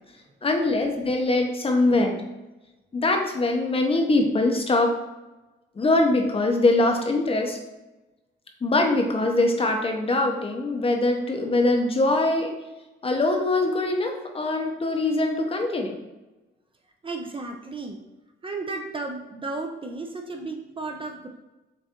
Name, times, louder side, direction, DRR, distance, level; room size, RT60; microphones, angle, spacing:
voice 1, 0.4-2.2 2.9-5.0 5.8-7.6 8.6-12.5 13.0-16.0, left 2 dB, 30° left, 3 dB, 0.7 m, -23 dB
voice 2, 17.0-18.0 18.4-21.3, right 3 dB, 25° right, 3 dB, 0.5 m, -33 dB
6.7 x 2.5 x 2.9 m, 1.0 s
cardioid pair, 90°, 20 cm